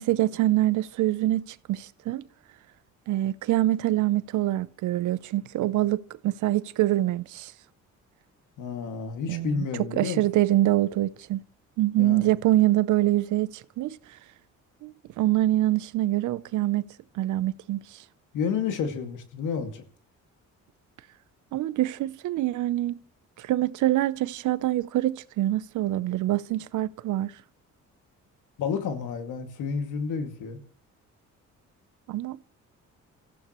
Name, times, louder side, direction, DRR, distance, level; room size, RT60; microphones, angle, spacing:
voice 1, 0.0-2.2 3.1-7.5 9.3-11.4 11.8-14.0 14.8-16.8 17.1-18.0 21.5-23.0 23.4-27.3 32.1-32.4, right 15 dB, 80° right, 0.7 m, -25 dB
voice 2, 8.6-10.2 12.0-12.3 18.3-19.8 28.6-30.6, left 6 dB, 85° left, 2.3 m, -30 dB
29.0 x 15.0 x 3.1 m
cardioid pair, 90°, 30 cm